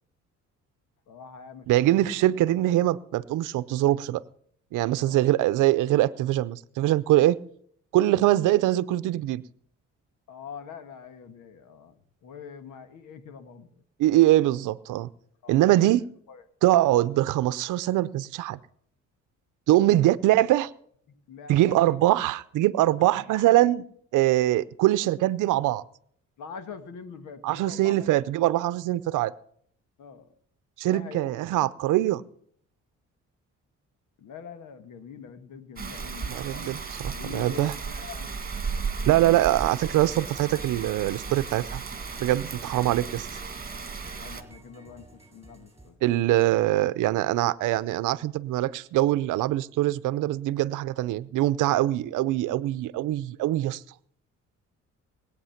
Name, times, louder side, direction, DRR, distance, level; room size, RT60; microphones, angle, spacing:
voice 1, 1.1-1.7 1.9-2.1 5.0-5.2 10.3-13.8 15.4-15.9 16.3-16.4 19.9-20.0 21.1-22.0 23.0-23.5 26.4-28.1 30.0-30.3 30.9-31.3 34.2-38.4 43.7-43.9 44.1-46.0 50.9-51.0, left 6 dB, 80° left, 1.6 m, -44 dB
voice 2, 1.7-4.2 4.7-7.4 7.9-9.4 14.0-15.1 15.5-16.0 16.6-18.6 19.7-20.7 21.5-23.8 24.1-25.8 27.4-29.3 30.8-32.2 36.3-37.7 39.1-41.8 42.2-43.3 46.0-53.8, right 15 dB, 85° right, 0.7 m, -23 dB
Rain, 35.8-44.4, right 5 dB, 30° right, 1.9 m, -35 dB
sound 1, 38.5-45.9, right 1 dB, 10° right, 7.2 m, -51 dB
20.5 x 8.6 x 5.8 m
cardioid pair, 90°, 30 cm